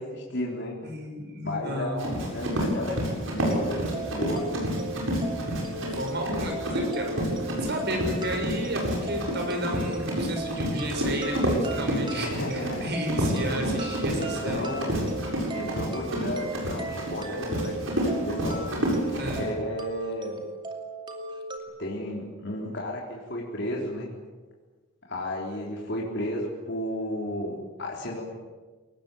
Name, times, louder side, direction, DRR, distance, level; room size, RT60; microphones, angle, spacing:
voice 1, 0.0-0.8 1.4-4.5 12.1-12.9 14.1-15.1 15.5-18.7 19.1-20.4 21.8-24.1 25.1-28.2, left 1 dB, 60° left, -2 dB, 3.8 m, -33 dB
voice 2, 0.8-2.1 5.8-14.7 19.2-19.5, equal, 55° right, 3 dB, 6.6 m, -32 dB
Run, 2.0-19.4, right 1 dB, 70° right, 7.8 m, -29 dB
sound 1, 3.4-21.6, right 2 dB, 25° right, 2.6 m, -37 dB
22.5 x 19.5 x 9.1 m, 1.3 s
head